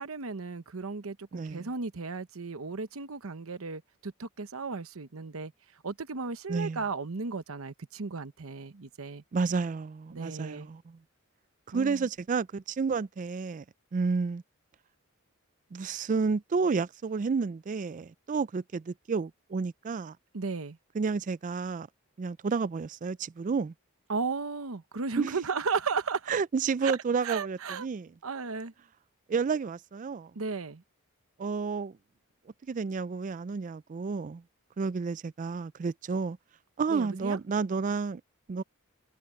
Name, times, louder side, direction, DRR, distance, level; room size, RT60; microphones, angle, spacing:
voice 1, 0.0-5.5 5.8-9.2 10.1-10.7 11.7-12.1 20.3-20.8 24.1-26.4 26.8-26.9 27.2-27.9 28.2-28.7 30.3-30.8 36.9-37.4, right 4 dB, 75° right, 0.9 m, -35 dB
voice 2, 1.3-1.7 6.5-6.8 9.3-11.0 11.7-13.6 13.9-14.4 15.7-20.2 20.9-21.9 22.2-23.7 25.2-25.4 26.3-28.1 29.3-30.3 31.4-32.0 32.7-34.4 34.8-36.4 36.8-38.2 38.5-38.6, right 5 dB, 35° right, 0.3 m, -30 dB
head